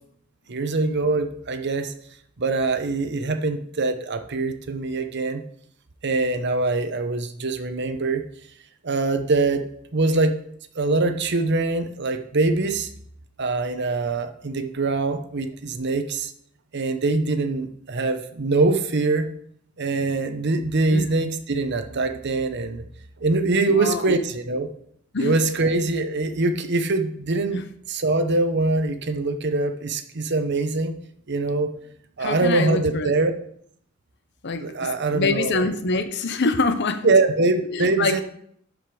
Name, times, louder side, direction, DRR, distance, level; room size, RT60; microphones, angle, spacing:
voice 1, 0.5-1.9 2.4-5.4 6.0-8.2 8.8-9.7 9.9-10.4 10.8-12.9 13.4-16.3 16.7-19.3 19.8-22.8 23.2-24.7 25.2-27.6 27.9-30.9 31.3-31.7 32.2-33.3 34.6-35.7 37.0-38.2, right 3 dB, 60° right, 8 dB, 0.9 m, -23 dB
voice 2, 23.7-24.2 25.1-25.4 27.5-27.6 32.2-33.1 34.4-37.1 37.7-38.2, left 3 dB, 60° left, 10 dB, 0.9 m, -25 dB
12.0 x 5.1 x 4.9 m, 0.67 s
head